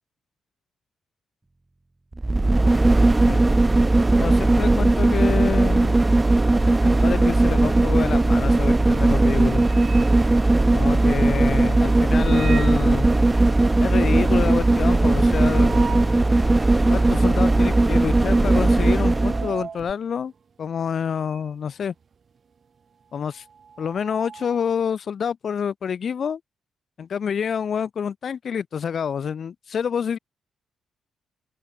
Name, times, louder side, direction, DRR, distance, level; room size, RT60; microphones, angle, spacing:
sound 1, 2.1-19.5 19.9-20.0, right 2 dB, 15° right, 0.5 m, -18 dB
voice 1, 4.2-6.0 6.8-9.6 10.7-13.2 13.8-15.8 16.9-20.3 20.6-21.9 23.1-23.4 23.8-26.4 27.0-30.2, left 7 dB, 55° left, 1.5 m, -27 dB
sound 2, 9.1-11.0 12.0-12.9 13.3-13.4 13.7-13.8 14.1-16.3 16.8-16.9 17.7-18.0 18.2-21.6 21.8-24.8, right 6 dB, 45° right, 0.9 m, -40 dB
sound 3, 11.3-17.7, left 9 dB, 75° left, 6.8 m, -45 dB
open air
cardioid pair, 105°, 0 cm